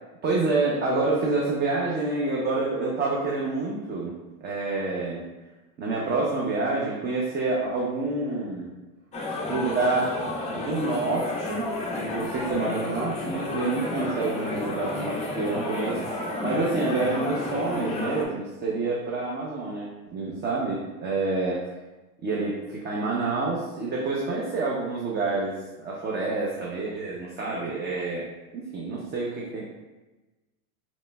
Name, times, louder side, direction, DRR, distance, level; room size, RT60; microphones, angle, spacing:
voice 1, 0.2-4.1 4.4-5.2 5.8-8.7 9.5-10.1 10.5-11.6 11.9-21.6 22.2-29.7, right 3 dB, 25° right, -4 dB, 0.6 m, -28 dB
sound 1, 9.1-18.2, left 2 dB, 15° left, 0.4 m, -31 dB
5.1 x 3.0 x 2.2 m, 1.1 s
supercardioid pair, 120°, 42 cm